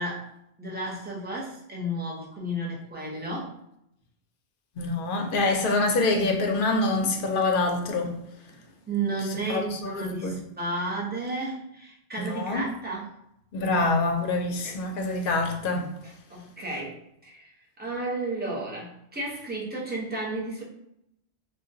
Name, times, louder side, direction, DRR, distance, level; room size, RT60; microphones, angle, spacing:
voice 1, 0.0-3.6 8.9-13.2 14.6-14.8 16.0-16.9 17.2-20.6, right 2 dB, 10° right, 0.5 m, -33 dB
voice 2, 4.8-8.2 9.5-10.4 12.3-12.6 13.5-15.9, left 3 dB, 60° left, 0.6 m, -25 dB
3.7 x 2.2 x 2.6 m
omnidirectional pair, 1.2 m